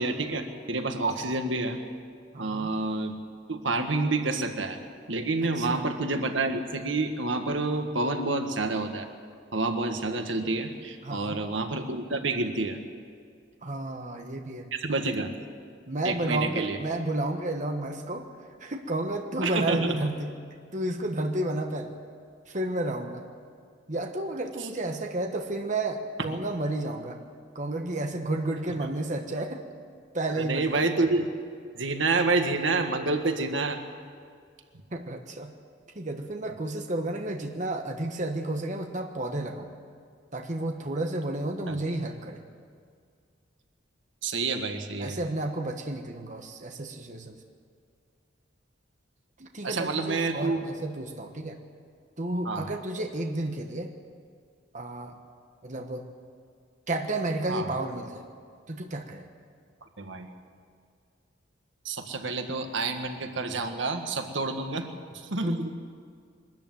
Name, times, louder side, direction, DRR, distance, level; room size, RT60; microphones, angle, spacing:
voice 1, 0.0-1.8 2.4-3.1 3.5-4.8 5.1-9.1 9.5-12.8 14.7-15.4 16.0-16.8 19.4-20.0 28.8-28.9 30.4-31.3 31.7-33.8 41.7-41.8 44.2-45.2 49.6-50.6 52.4-52.7 57.5-57.7 60.0-60.3 61.8-64.9 65.3-65.6, right 3 dB, 85° right, 6 dB, 1.7 m, -28 dB
voice 2, 2.3-2.7 5.4-5.8 11.0-11.4 13.6-14.7 15.9-18.3 18.6-20.3 20.7-22.0 22.5-23.2 23.9-27.2 27.5-29.6 30.1-30.8 34.9-35.5 35.9-39.7 40.3-42.4 45.0-47.4 49.4-51.6 52.2-53.9 54.7-55.1 55.6-56.1 56.9-58.2 58.7-59.3 65.4-65.7, right 1 dB, 40° right, 4 dB, 1.4 m, -31 dB
22.5 x 13.5 x 9.2 m, 2.1 s
head